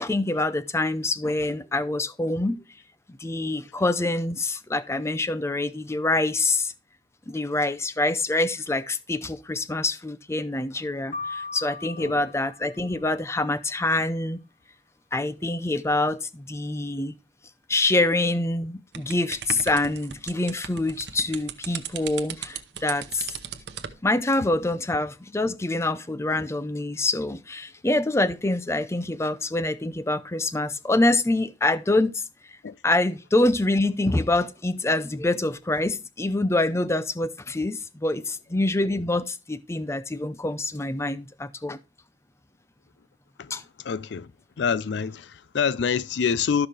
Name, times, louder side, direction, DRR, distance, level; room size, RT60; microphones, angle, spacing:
voice 1, 0.0-2.6 3.1-6.7 7.3-14.4 15.1-17.1 17.7-23.3 24.0-32.2 32.8-41.8 43.5-43.6, left 2 dB, 15° left, 0.5 m, -25 dB
sound 1, 11.1-13.3, left 4 dB, 55° left, 3.3 m, -38 dB
sound 2, 18.9-24.0, right 8 dB, 65° right, 0.9 m, -37 dB
voice 2, 43.8-44.3 44.6-46.7, left 6 dB, 75° left, 0.4 m, -26 dB
12.5 x 5.8 x 3.3 m
head